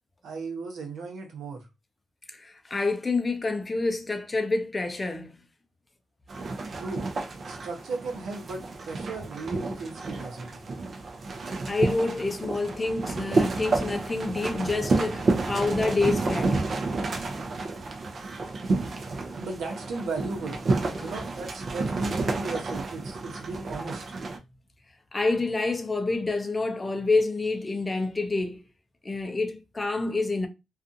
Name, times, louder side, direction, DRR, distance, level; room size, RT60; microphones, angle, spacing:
voice 1, 0.2-1.7 6.8-7.1 7.5-10.6 19.4-20.6 21.0-24.0, right 3 dB, 85° right, 0.9 m, -36 dB
voice 2, 2.3-5.4 11.6-16.7 20.9-21.1 25.1-28.6 29.0-30.5, left 3 dB, 25° left, 0.5 m, -28 dB
sound 1, 6.3-24.4, right 3 dB, 50° right, 0.5 m, -30 dB
2.5 x 2.4 x 2.6 m
cardioid pair, 90°, 0 cm